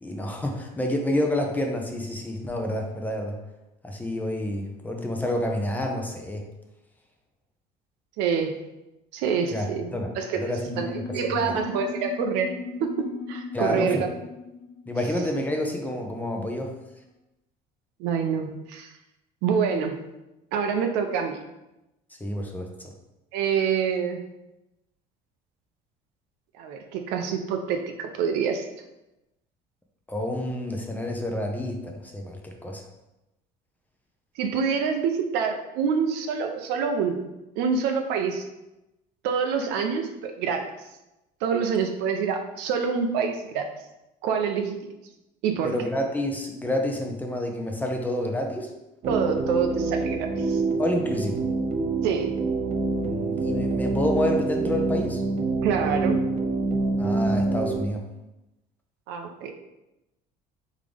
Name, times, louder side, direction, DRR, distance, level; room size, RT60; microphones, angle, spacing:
voice 1, 0.0-3.3 3.8-6.4 9.5-10.1 10.3-11.0 11.5-11.6 13.5-13.9 14.9-16.7 22.2-22.9 30.1-32.8 45.6-48.7 50.8-51.4 53.0-55.2 57.0-58.0, left 1 dB, 10° left, 2 dB, 0.6 m, -28 dB
voice 2, 8.2-8.6 9.1-12.5 12.8-14.2 18.0-18.9 19.4-20.0 20.5-21.4 23.3-24.2 26.6-28.7 34.4-37.3 37.6-38.4 39.2-40.7 41.4-43.7 44.2-44.8 45.4-45.8 49.1-50.6 52.0-52.3 55.6-56.2 59.1-59.5, right 6 dB, 80° right, 5 dB, 0.6 m, -26 dB
sound 1, 10.4-16.4, left 4 dB, 65° left, 1.3 m, -38 dB
sound 2, 49.0-57.9, right 3 dB, 45° right, 0.6 m, -26 dB
3.7 x 3.7 x 3.3 m, 0.95 s
cardioid pair, 120°, 17 cm